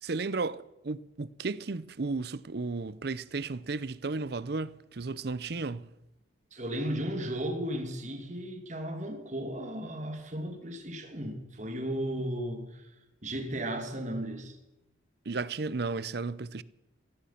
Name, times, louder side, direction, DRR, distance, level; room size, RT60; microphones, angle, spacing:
voice 1, 0.0-5.9 15.3-16.6, right 3 dB, 55° right, 0.6 m, -34 dB
voice 2, 6.5-12.8 13.2-14.5, right 1 dB, 40° right, 2.5 m, -35 dB
16.0 x 15.0 x 5.9 m
head